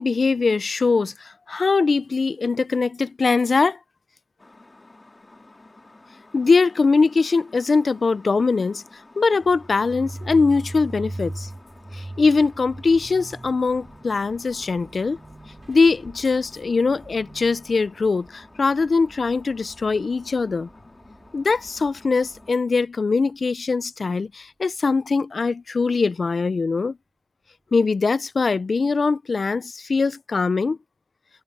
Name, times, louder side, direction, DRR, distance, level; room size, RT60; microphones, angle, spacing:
voice 1, 0.0-3.8 6.3-8.8 9.2-11.5 11.9-15.2 15.7-20.7 21.3-27.0 27.7-30.8, left 4 dB, 85° left, 0.4 m, -21 dB
sound 1, 4.4-22.6, left 2 dB, 40° left, 2.6 m, -51 dB
sound 2, 9.4-20.9, right 1 dB, 30° right, 2.7 m, -40 dB
sound 3, 12.4-22.5, right 2 dB, 45° right, 4.7 m, -53 dB
wide cardioid pair, 80°, 0 cm